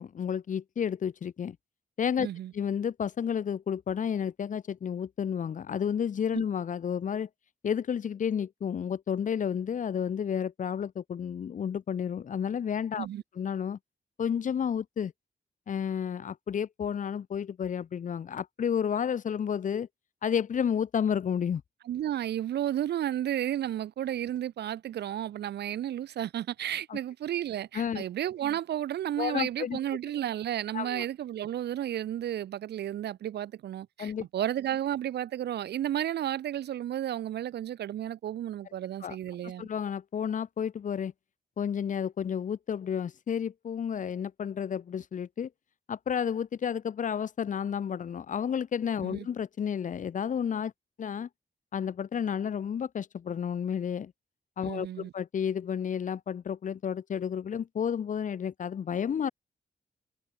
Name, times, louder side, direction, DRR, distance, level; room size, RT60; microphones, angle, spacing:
voice 1, 0.0-1.6 2.0-2.3 2.5-7.3 7.6-13.1 13.4-13.8 14.2-15.1 15.7-19.9 20.2-21.6 26.9-27.0 27.7-28.0 29.2-29.8 30.7-31.1 34.0-34.3 39.0-39.2 39.4-41.1 41.6-45.5 45.9-50.7 51.0-51.3 51.7-54.1 54.6-59.3, left 8 dB, 50° left, 0.7 m, -31 dB
voice 2, 2.2-2.5 13.0-13.2 21.9-39.7 49.0-49.3 54.6-55.1, right 11 dB, 80° right, 0.5 m, -32 dB
wide cardioid pair, 155°, 17 cm